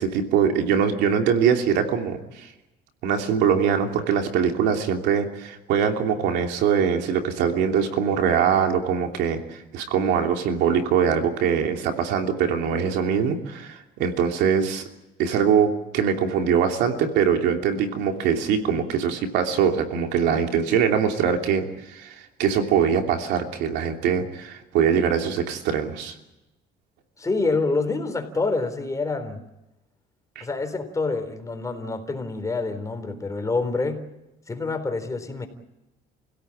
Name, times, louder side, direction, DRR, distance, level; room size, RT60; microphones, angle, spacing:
voice 1, 0.0-2.5 3.0-14.8 15.2-26.1 30.3-30.4, right 7 dB, 90° right, 4 dB, 3.0 m, -23 dB
voice 2, 27.2-29.4 30.4-34.0 34.5-35.5, left 3 dB, 20° left, 7 dB, 3.9 m, -27 dB
29.0 x 17.0 x 8.7 m, 0.97 s
cardioid pair, 110°, 17 cm